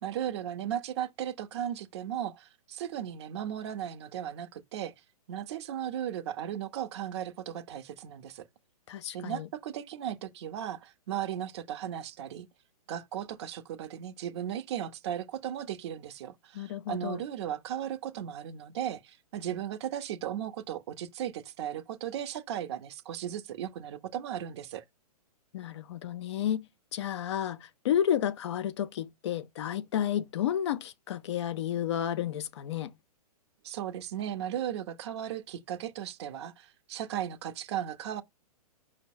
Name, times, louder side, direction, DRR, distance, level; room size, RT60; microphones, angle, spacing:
voice 1, 0.0-4.9 5.3-8.4 9.1-12.5 12.9-24.8 33.6-38.2, right 10 dB, 45° right, 0.7 m, -36 dB
voice 2, 8.9-9.5 16.5-17.2 25.5-32.9, left 10 dB, 45° left, 0.5 m, -31 dB
5.2 x 2.1 x 4.6 m
figure-of-eight pair, 120°, 20 cm